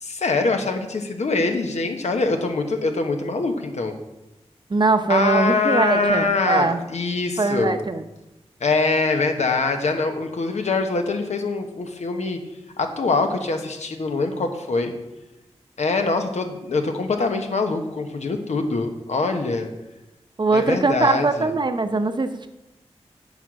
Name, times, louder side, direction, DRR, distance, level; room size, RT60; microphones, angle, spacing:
voice 1, 0.0-3.9 5.1-7.7 8.6-12.4 12.8-14.9 15.8-19.7 20.5-21.5, left 3 dB, 80° left, 5 dB, 1.2 m, -23 dB
voice 2, 4.7-6.8 7.4-8.0 20.4-22.5, right 3 dB, 40° right, 7 dB, 0.8 m, -21 dB
8.9 x 6.4 x 6.3 m, 0.97 s
wide cardioid pair, 65°, 11 cm